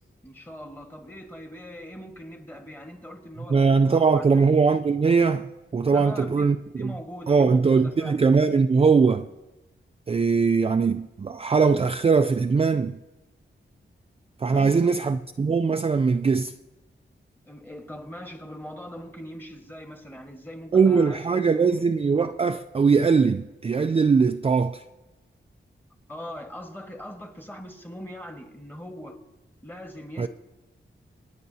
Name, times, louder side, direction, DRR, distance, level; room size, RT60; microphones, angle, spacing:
voice 1, 0.2-4.5 5.9-6.5 6.8-8.3 14.5-15.0 17.5-21.9 26.1-29.2 29.6-30.3, equal, 10° left, 1.5 m, -41 dB
voice 2, 3.5-6.9 7.3-9.3 10.1-13.0 14.4-16.5 20.7-24.8 30.2-30.3, right 5 dB, 30° right, 0.4 m, -21 dB
27.0 x 9.7 x 2.8 m
wide cardioid pair, 105°, 20 cm